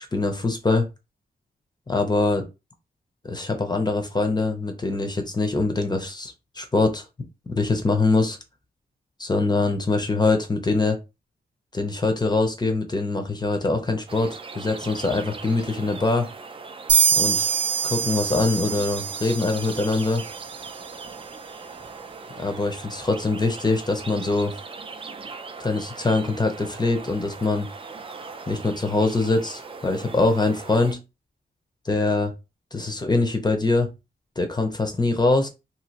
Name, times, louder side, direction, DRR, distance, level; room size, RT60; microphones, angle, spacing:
voice 1, 0.1-0.9 1.9-2.4 3.2-7.0 7.5-8.4 9.2-11.0 11.7-16.3 17.2-17.5 17.8-20.2 22.4-24.5 25.6-27.7 28.5-31.0 31.8-32.3 32.7-33.9 34.4-35.5, left 3 dB, 25° left, 5 dB, 0.6 m, -23 dB
sound 1, 14.1-30.9, right 4 dB, 30° right, 0.4 m, -40 dB
sound 2, 16.9-20.5, right 7 dB, 85° right, 0.5 m, -24 dB
3.0 x 2.8 x 2.8 m, 0.26 s
wide cardioid pair, 145°, 18 cm